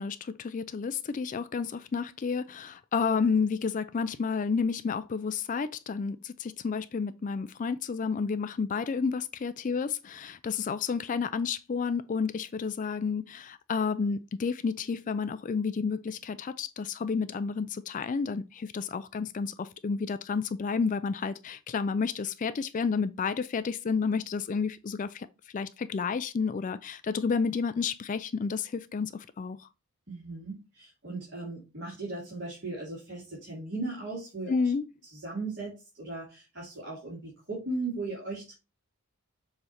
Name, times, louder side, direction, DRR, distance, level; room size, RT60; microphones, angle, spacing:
voice 1, 0.0-25.3 25.5-29.7 34.5-34.8, left 5 dB, 35° left, 0.3 m, -31 dB
voice 2, 30.1-34.7 35.2-38.5, right 2 dB, 55° right, 3.0 m, -37 dB
6.9 x 3.2 x 4.3 m
head